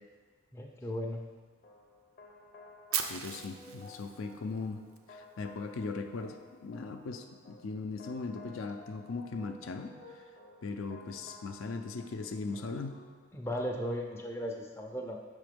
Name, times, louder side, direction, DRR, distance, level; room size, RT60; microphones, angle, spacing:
voice 1, 0.5-1.2 13.3-15.2, equal, 10° left, 1 dB, 0.4 m, -36 dB
sound 1, 1.6-13.3, left 3 dB, 40° left, 0.7 m, -54 dB
Fire, 2.9-5.0, right 8 dB, 80° right, 0.5 m, -37 dB
voice 2, 3.1-4.8 5.1-10.2 10.6-13.0, left 4 dB, 75° left, 6 dB, 0.4 m, -39 dB
6.1 x 3.7 x 5.1 m, 1.4 s
head